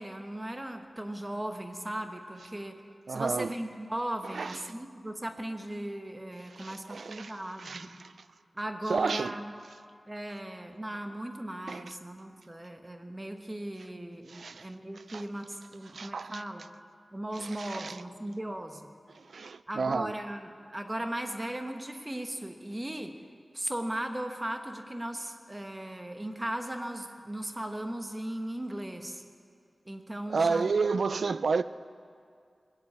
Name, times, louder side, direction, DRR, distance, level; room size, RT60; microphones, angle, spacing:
voice 1, 0.0-2.8 3.1-7.9 8.5-9.4 10.1-16.7 17.1-18.9 19.7-23.2 23.5-29.2 29.9-30.6, right 1 dB, 15° right, 1.1 m, -37 dB
voice 2, 3.1-3.5 4.2-4.6 6.5-7.3 7.6-8.1 8.9-9.3 11.7-11.9 14.3-14.7 15.1-15.2 15.9-16.4 17.4-18.0 19.1-20.1 30.3-31.6, right 4 dB, 85° right, 0.4 m, -31 dB
20.0 x 8.0 x 8.7 m
wide cardioid pair, 105°, 0 cm